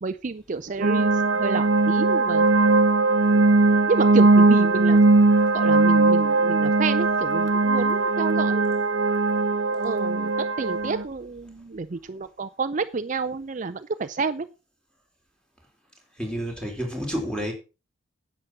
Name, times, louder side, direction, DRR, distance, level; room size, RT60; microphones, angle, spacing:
voice 1, 0.0-2.5 3.9-5.0 5.5-8.7 9.7-14.5, right 4 dB, 40° right, 0.5 m, -29 dB
sound 1, 0.8-11.0, right 3 dB, 70° right, 0.9 m, -19 dB
voice 2, 16.2-17.5, equal, 5° left, 3.7 m, -29 dB
10.5 x 7.9 x 6.1 m
head